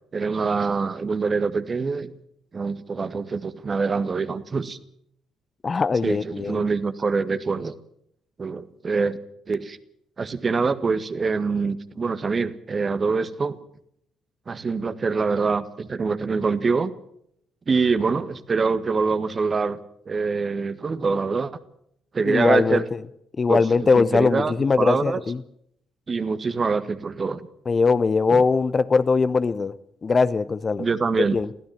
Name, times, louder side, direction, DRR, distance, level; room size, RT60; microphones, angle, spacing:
voice 1, 0.1-2.1 2.5-4.8 6.0-7.7 8.4-9.2 9.5-9.8 10.2-13.6 14.5-16.9 17.7-19.8 20.1-21.5 22.1-22.8 23.5-23.6 23.9-25.2 26.1-27.4 28.3-28.4 30.8-31.4, right 4 dB, 35° right, 1.6 m, -24 dB
voice 2, 5.6-6.7 22.3-22.8 23.4-25.4 27.7-29.7 30.0-30.9 31.3-31.5, left 4 dB, 35° left, 0.9 m, -21 dB
22.5 x 16.0 x 7.5 m
figure-of-eight pair, 45°, 0 cm